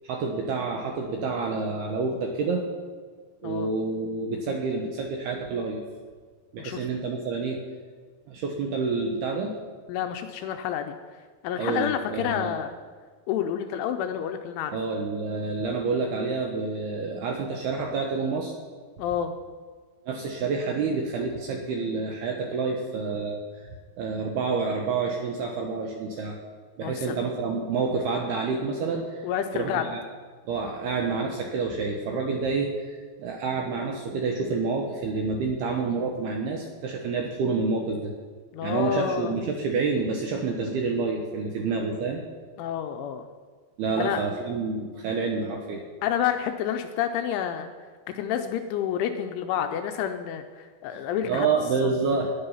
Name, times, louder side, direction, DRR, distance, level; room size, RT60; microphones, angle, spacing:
voice 1, 0.0-2.6 3.4-5.8 6.5-7.6 8.3-9.5 11.6-12.5 14.7-18.5 20.1-23.4 24.0-26.4 26.8-29.3 29.5-30.0 30.5-38.1 38.6-42.2 43.8-45.8 51.2-52.3, right 4 dB, 75° right, 1 dB, 2.4 m, -28 dB
voice 2, 9.9-11.0 11.4-12.8 13.3-14.7 19.0-19.3 26.8-27.3 29.2-29.9 38.5-39.4 41.6-41.7 42.6-43.3 44.0-44.2 46.0-47.7 48.1-51.5, left 9 dB, 80° left, 6 dB, 2.9 m, -29 dB
17.5 x 10.5 x 5.6 m, 1.5 s
omnidirectional pair, 5.9 m